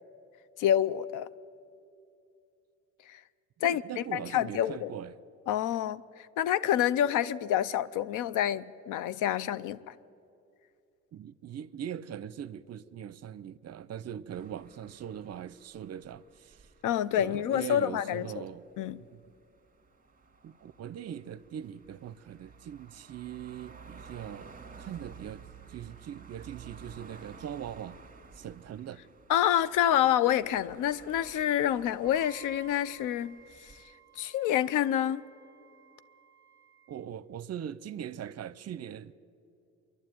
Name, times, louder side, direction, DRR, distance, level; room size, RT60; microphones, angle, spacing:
voice 1, 0.6-1.3 3.1-3.2 3.6-4.9 5.5-9.8 16.8-18.3 18.8-19.0 29.3-33.4 34.2-35.2, left 11 dB, 90° left, 0.6 m, -27 dB
voice 2, 3.6-5.1 11.1-16.7 17.1-18.7 19.1-19.2 20.4-25.4 25.7-28.0 28.3-29.0 36.9-39.1, right 9 dB, 55° right, 0.7 m, -41 dB
sound 1, 14.3-33.8, right 5 dB, 25° right, 1.7 m, -53 dB
Wind instrument woodwind instrument, 32.0-37.0, right 8 dB, 10° right, 1.8 m, -56 dB
26.0 x 11.5 x 9.2 m
cardioid pair, 90°, 30 cm